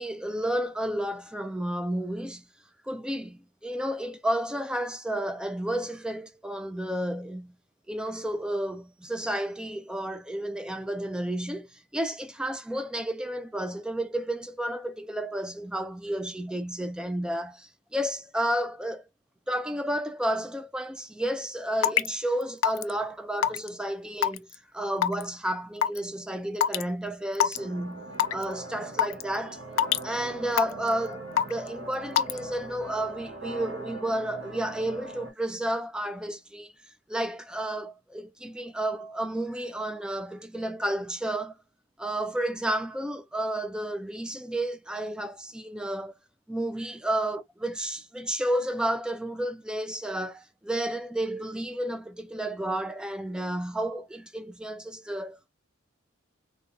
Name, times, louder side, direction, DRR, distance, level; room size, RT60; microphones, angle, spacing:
voice 1, 0.0-2.4 2.9-7.5 7.9-19.0 19.5-24.5 24.7-29.6 30.0-36.7 37.1-41.6 42.0-46.1 46.5-55.5, right 1 dB, 5° right, 0.3 m, -31 dB
Raindrop / Water tap faucet / Drip, 21.8-22.1 22.6-22.9 23.4-23.7 24.2-24.5 25.0-25.2 25.8-26.0 26.6-26.8 27.3-27.6 28.2-28.4 29.0-29.2 29.8-30.0 30.6-30.9 31.4-31.7 32.2-32.4, left 9 dB, 80° left, 0.3 m, -23 dB
sound 1, 27.5-35.3, right 2 dB, 70° right, 1.6 m, -41 dB
4.2 x 2.2 x 2.4 m
head